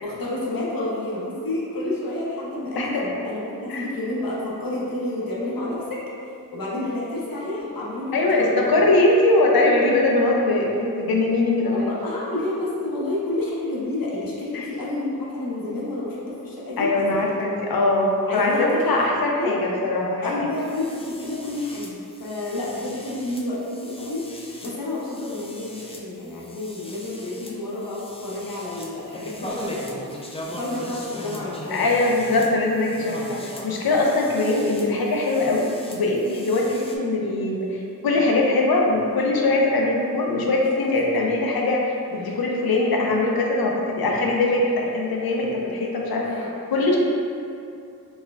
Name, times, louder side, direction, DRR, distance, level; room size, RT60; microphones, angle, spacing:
voice 1, 0.0-6.0 6.5-8.7 11.7-17.3 18.3-19.5 20.2-31.8 36.6-36.8 40.6-40.9 46.0-46.5, left 2 dB, 70° left, -6 dB, 0.9 m, -30 dB
voice 2, 8.1-11.9 14.5-14.7 16.8-20.2 31.7-46.2 46.7-47.0, left 2 dB, 90° left, -1 dB, 0.6 m, -21 dB
sound 1, 20.5-37.0, left 1 dB, 15° left, 0.4 m, -39 dB
4.2 x 3.4 x 2.4 m, 2.5 s
wide cardioid pair, 80°, 35 cm